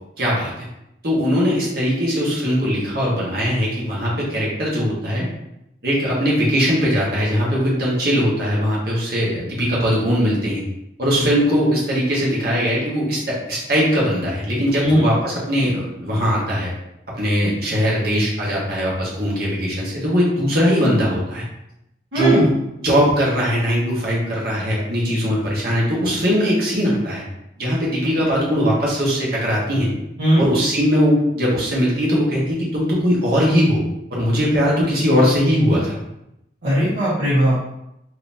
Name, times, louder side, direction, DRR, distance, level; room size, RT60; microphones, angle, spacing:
voice 1, 0.2-0.7 1.0-5.3 5.8-10.6 11.0-16.7 17.2-21.4 22.1-22.5 22.8-27.2 27.6-29.9 30.4-33.8 34.1-36.0, equal, 55° right, -5 dB, 1.2 m, -20 dB
voice 2, 22.1-22.5 30.2-30.4 36.6-37.8, right 1 dB, 85° right, -12 dB, 1.2 m, -18 dB
3.8 x 2.8 x 2.6 m, 0.84 s
head